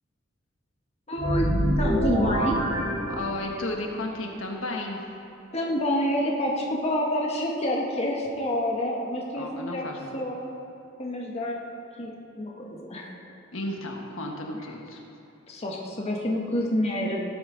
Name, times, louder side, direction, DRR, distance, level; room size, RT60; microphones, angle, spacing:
voice 1, 1.1-1.5 1.8-2.6 5.5-9.9 10.1-10.5 11.0-11.6 12.0-12.1 12.4-13.1 15.5-17.2, left 1 dB, 30° left, -1 dB, 1.2 m, -27 dB
sound 1, 1.2-3.7, equal, 60° right, 3.1 m, -26 dB
voice 2, 3.1-5.0 9.3-10.2 13.5-15.0, left 1 dB, 75° left, 1 dB, 1.4 m, -33 dB
17.5 x 8.6 x 3.9 m, 2.8 s
head